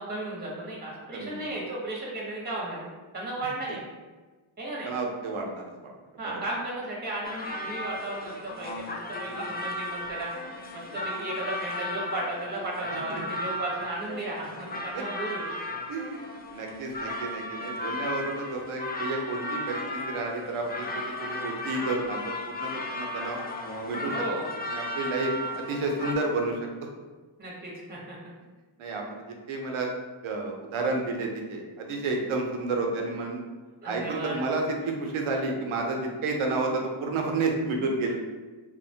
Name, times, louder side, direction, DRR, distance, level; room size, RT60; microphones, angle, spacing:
voice 1, 0.0-2.9 3.1-3.8 4.6-4.9 6.2-10.3 10.7-15.5 24.0-24.5 27.4-28.2 33.8-34.3, right 1 dB, 20° right, -4 dB, 0.8 m, -35 dB
voice 2, 1.1-1.5 3.7-3.8 4.8-5.9 6.2-6.4 9.3-9.5 13.1-13.4 14.9-15.0 15.9-23.4 23.8-26.6 28.8-29.9 30.2-33.4 33.8-38.1, right 3 dB, 80° right, 2 dB, 0.6 m, -31 dB
sound 1, 7.2-26.1, left 1 dB, 25° left, 0.3 m, -35 dB
2.9 x 2.1 x 2.7 m, 1.3 s
cardioid pair, 50°, 49 cm